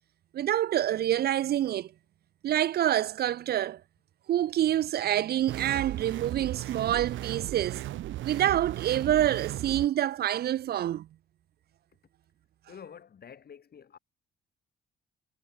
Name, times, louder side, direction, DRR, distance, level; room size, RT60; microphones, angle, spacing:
voice 1, 0.3-1.9 2.4-3.8 4.3-7.8 8.2-11.1, right 12 dB, 55° right, 0.4 m, -27 dB
sound 1, 5.5-9.9, right 14 dB, 75° right, 0.8 m, -36 dB
voice 2, 12.7-14.0, left 7 dB, 50° left, 6.7 m, -48 dB
cardioid pair, 90°, 20 cm